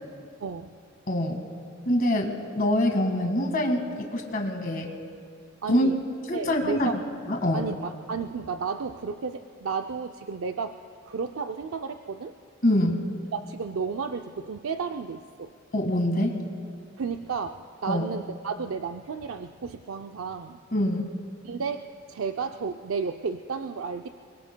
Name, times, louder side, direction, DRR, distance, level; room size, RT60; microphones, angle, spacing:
voice 1, 0.4-0.7 5.6-6.0 6.3-6.9 7.5-10.8 11.1-12.3 13.3-15.5 17.0-20.6 21.4-24.1, right 5 dB, 85° right, 6 dB, 0.5 m, -32 dB
voice 2, 1.1-1.4 1.9-4.9 5.7-5.9 6.3-6.9 7.3-7.6 12.6-13.0 15.7-16.4 17.9-18.0 20.7-21.1, left 1 dB, 45° left, 3 dB, 1.8 m, -25 dB
27.5 x 22.5 x 2.2 m, 2.3 s
head